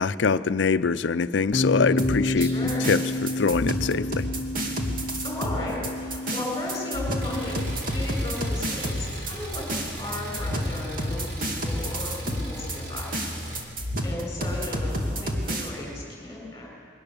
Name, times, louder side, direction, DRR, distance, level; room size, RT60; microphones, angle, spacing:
voice 1, 0.0-4.2, left 5 dB, 85° left, 14 dB, 0.5 m, -24 dB
Bass guitar, 1.5-7.8, left 1 dB, 40° left, 0.7 m, -30 dB
sound 1, 2.0-15.7, equal, 50° right, 2.3 m, -30 dB
voice 2, 2.2-2.9 5.2-7.6 7.9-13.2 13.5-16.7, left 2 dB, 20° left, -2 dB, 7.7 m, -35 dB
Engine, 7.2-13.6, equal, 70° right, 4.6 m, -37 dB
22.5 x 18.0 x 7.0 m, 2.3 s
head